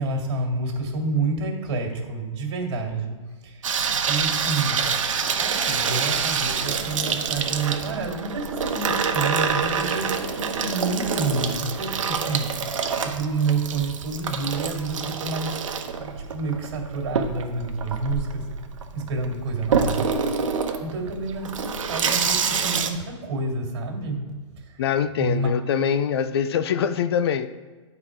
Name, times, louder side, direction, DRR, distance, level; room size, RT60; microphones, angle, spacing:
voice 1, 0.0-3.7 4.1-5.0 5.4-15.6 16.0-18.5 18.9-20.2 20.5-24.8 25.2-25.5, right 3 dB, 55° right, 1 dB, 2.3 m, -29 dB
Water tap faucet / Sink (filling or washing), 3.6-22.9, right 6 dB, 80° right, 1.0 m, -26 dB
voice 2, 24.8-27.6, left 8 dB, 50° left, 12 dB, 0.5 m, -24 dB
9.8 x 4.4 x 4.8 m, 1.4 s
hypercardioid pair, 160°, 16 cm